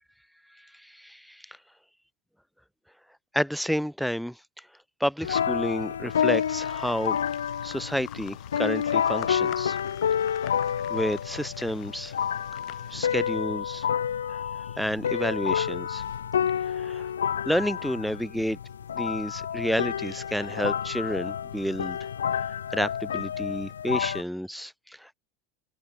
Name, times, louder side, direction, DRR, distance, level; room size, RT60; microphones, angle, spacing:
voice 1, 0.6-1.6 3.3-4.7 5.0-7.2 7.6-9.8 10.3-10.5 10.9-12.1 12.9-13.9 14.3-14.4 14.8-16.0 16.6-17.1 17.5-18.6 18.9-22.0 22.7-25.1, equal, ahead, 0.5 m, -30 dB
sound 1, 5.2-24.2, left 8 dB, 85° left, 0.6 m, -29 dB
sound 2, 6.1-13.4, left 16 dB, 50° left, 3.0 m, -48 dB
hypercardioid pair, 80°, 0 cm